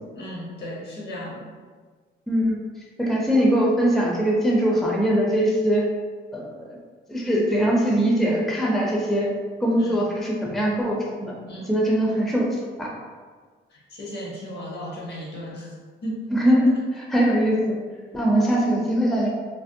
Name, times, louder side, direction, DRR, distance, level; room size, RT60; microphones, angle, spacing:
voice 1, 0.1-1.4 9.8-10.0 11.5-11.7 13.7-15.7 16.0-16.2 16.7-16.8, equal, 55° left, -3 dB, 0.8 m, -35 dB
voice 2, 2.3-2.6 3.0-5.9 6.3-6.6 7.1-9.3 9.6-11.3 11.7-12.9 16.3-17.8 18.1-19.3, equal, ahead, -3 dB, 0.4 m, -21 dB
2.5 x 2.0 x 2.6 m, 1.5 s
cardioid pair, 90°, 20 cm